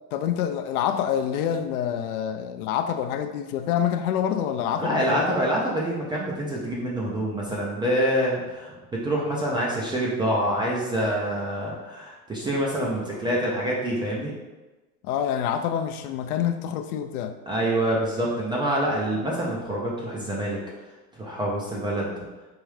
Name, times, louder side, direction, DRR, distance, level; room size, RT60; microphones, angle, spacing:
voice 1, 0.1-5.3 15.0-17.4, left 9 dB, 70° left, 8 dB, 0.5 m, -27 dB
voice 2, 4.8-14.4 17.5-20.6 21.2-22.2, right 1 dB, 10° right, -4 dB, 0.3 m, -26 dB
4.7 x 2.6 x 3.2 m, 1.2 s
hypercardioid pair, 110°, 46 cm